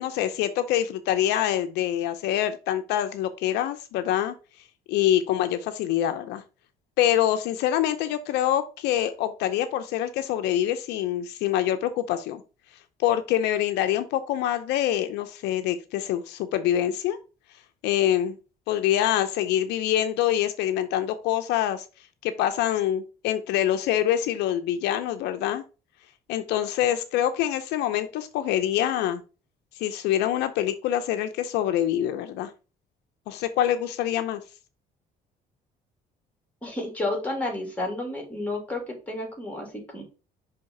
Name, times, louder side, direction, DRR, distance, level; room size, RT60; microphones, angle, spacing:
voice 1, 0.0-4.3 4.9-6.4 7.0-12.4 13.0-17.2 17.8-18.4 18.7-21.8 22.2-25.6 26.3-29.2 29.8-32.5 33.3-34.4, left 11 dB, 85° left, 0.7 m, -25 dB
voice 2, 36.6-40.0, left 2 dB, 10° left, 3.0 m, -31 dB
5.7 x 3.5 x 5.3 m
cardioid pair, 110°, 17 cm